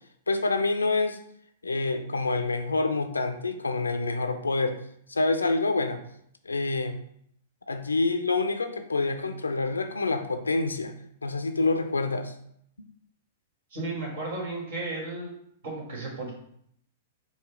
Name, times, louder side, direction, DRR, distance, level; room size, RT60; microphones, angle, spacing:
voice 1, 0.3-1.2 1.6-4.8 5.1-6.0 6.4-7.0 7.7-12.3, left 3 dB, 85° left, 7 dB, 0.5 m, -27 dB
voice 2, 13.7-15.3 15.6-16.3, right 2 dB, 60° right, -2 dB, 1.9 m, -34 dB
4.9 x 2.3 x 4.7 m, 0.69 s
figure-of-eight pair, 105°, 0 cm